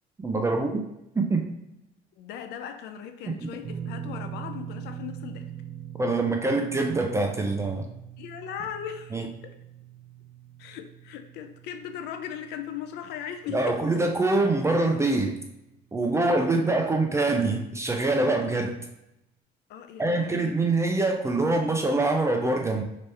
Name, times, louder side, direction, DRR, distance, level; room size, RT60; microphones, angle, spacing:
voice 1, 0.2-0.8 1.2-1.5 3.4-3.5 6.0-7.9 9.1-9.2 13.5-15.3 15.9-18.7 20.0-22.8, right 2 dB, 15° right, 3 dB, 0.4 m, -24 dB
voice 2, 2.2-5.5 8.2-9.6 10.6-13.8 19.7-20.8, left 9 dB, 80° left, 7 dB, 0.4 m, -38 dB
sound 1, 3.6-15.9 16.1-16.4 18.0-18.1, right 10 dB, 55° right, 0.6 m, -43 dB
3.3 x 3.0 x 3.2 m, 0.87 s
cardioid pair, 110°, 17 cm